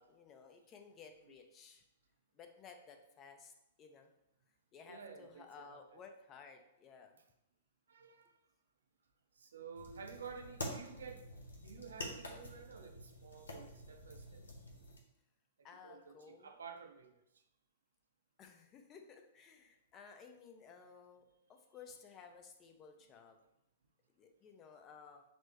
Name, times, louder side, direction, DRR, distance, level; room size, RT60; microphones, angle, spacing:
voice 1, 0.0-1.8 2.3-3.5 3.8-4.1 4.7-7.2 15.6-16.5 18.4-21.2 21.5-23.4 24.2-25.2, left 5 dB, 30° left, 5 dB, 0.6 m, -56 dB
voice 2, 4.9-6.0 7.9-8.3 9.4-11.2 11.5-14.5 15.8-17.2, right 5 dB, 75° right, 5 dB, 0.5 m, -52 dB
sound 1, 9.7-15.0, left 1 dB, 80° left, 0.8 m, -48 dB
6.1 x 2.0 x 2.9 m, 0.84 s
hypercardioid pair, 110°, 0 cm